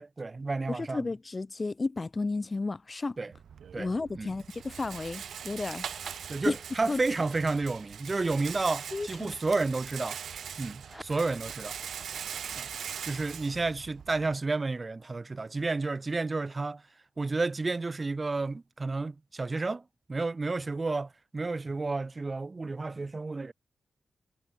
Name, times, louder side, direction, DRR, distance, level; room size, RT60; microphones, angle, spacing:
voice 1, 0.0-1.1 3.2-3.3 3.7-4.3 6.3-10.2 10.6-11.8 12.6-12.7 13.1-16.8 17.2-19.8 20.1-23.5, right 3 dB, 30° right, 1.4 m, -31 dB
voice 2, 0.7-3.2 3.8-6.2 6.4-6.6 6.9-7.0 8.9-9.3, left 3 dB, 30° left, 0.4 m, -33 dB
Rattle, 3.3-14.4, right 8 dB, 90° right, 2.3 m, -41 dB
sound 1, 10.7-17.5, equal, ahead, 4.8 m, -55 dB
wide cardioid pair, 105°, 0 cm